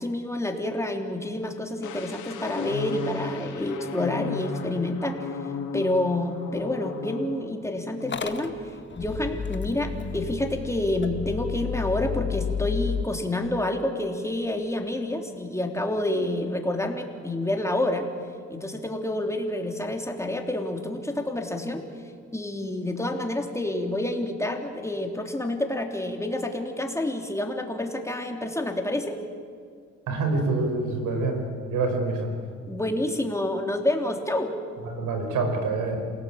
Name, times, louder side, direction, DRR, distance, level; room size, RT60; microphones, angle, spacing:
voice 1, 0.0-5.3 5.7-8.6 8.9-18.1 18.5-21.8 22.3-29.2 32.7-34.5, left 1 dB, 10° left, 3 dB, 3.4 m, -28 dB
sound 1, 1.8-7.5 7.8-8.2, left 5 dB, 80° left, 2.7 m, -35 dB
Motor vehicle (road) / Engine starting, 8.0-13.0, left 6 dB, 40° left, 1.6 m, -32 dB
voice 2, 30.1-31.4 31.7-32.3 34.8-36.0, right 3 dB, 85° right, 5 dB, 5.3 m, -26 dB
28.0 x 18.0 x 8.8 m, 2.2 s
cardioid pair, 90°, 30 cm